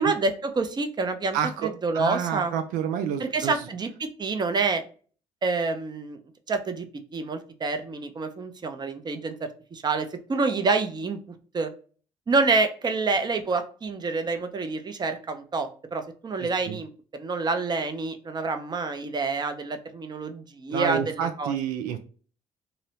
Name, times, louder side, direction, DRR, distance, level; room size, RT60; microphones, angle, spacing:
voice 1, 0.0-1.4 1.6-2.5 3.2-4.8 5.4-6.2 6.5-6.8 7.1-9.4 9.7-11.2 11.5-11.7 12.3-21.5, right 3 dB, 30° right, 7 dB, 0.6 m, -27 dB
voice 2, 1.3-3.7 16.4-16.8 20.7-22.0, right 8 dB, 80° right, 7 dB, 0.4 m, -29 dB
2.7 x 2.0 x 2.7 m, 0.40 s
supercardioid pair, 65°, 14 cm